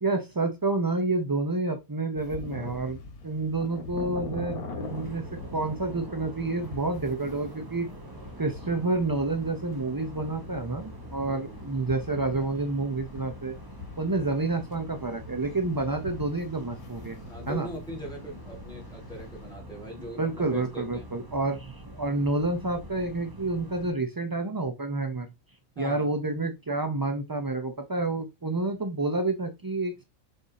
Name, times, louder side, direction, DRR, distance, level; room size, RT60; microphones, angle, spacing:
voice 1, 0.0-7.9 8.4-13.5 14.0-17.2 17.5-17.7 20.2-25.3 25.8-30.0, right 2 dB, 35° right, 0.3 m, -29 dB
sound 1, 2.1-19.5, left 2 dB, 90° left, 2.0 m, -43 dB
sound 2, 4.8-23.9, right 1 dB, 15° right, 1.0 m, -44 dB
voice 2, 11.2-11.6 17.3-21.2 25.8-26.1, equal, 5° left, 3.7 m, -41 dB
5.6 x 5.1 x 4.1 m
omnidirectional pair, 1.5 m